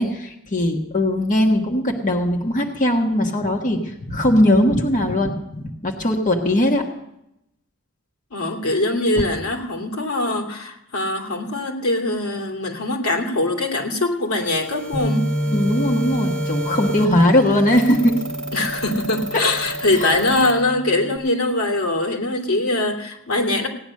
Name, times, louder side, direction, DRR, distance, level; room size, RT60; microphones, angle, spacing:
voice 1, 0.0-6.9 15.5-18.2 20.0-20.2, left 1 dB, 35° left, 2 dB, 1.4 m, -19 dB
voice 2, 8.3-15.3 18.5-23.7, left 2 dB, 90° left, 1 dB, 2.9 m, -22 dB
sound 1, 14.3-20.5, right 1 dB, 5° left, 2.0 m, -32 dB
Bass guitar, 14.9-21.2, equal, 60° left, 2.2 m, -29 dB
17.0 x 10.0 x 6.5 m, 0.83 s
head